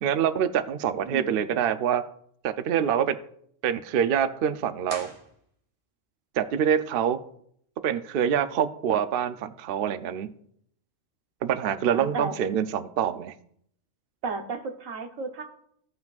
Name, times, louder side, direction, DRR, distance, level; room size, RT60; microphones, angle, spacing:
voice 1, 0.0-2.0 2.4-3.2 3.6-5.1 6.3-7.2 7.8-10.3 11.4-13.3, right 8 dB, 60° right, 11 dB, 0.6 m, -25 dB
voice 2, 1.0-1.5 11.6-12.3 14.2-15.4, right 4 dB, 85° right, 5 dB, 1.3 m, -34 dB
sound 1, 4.8-6.0, right 1 dB, 30° right, 1.4 m, -42 dB
16.5 x 5.8 x 2.4 m, 0.69 s
omnidirectional pair, 1.3 m